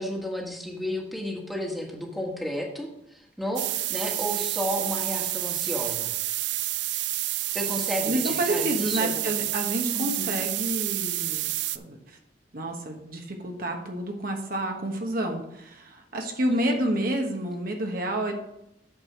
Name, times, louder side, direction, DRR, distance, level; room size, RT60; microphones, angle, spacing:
voice 1, 0.0-6.1 7.5-9.4 9.9-10.4 16.7-16.8, equal, ahead, -1 dB, 1.5 m, -32 dB
sound 1, 3.6-11.8, right 15 dB, 85° right, 0.4 m, -29 dB
voice 2, 8.0-12.2 12.5-18.3, right 1 dB, 55° right, 2 dB, 1.2 m, -29 dB
8.5 x 4.8 x 6.0 m, 0.82 s
head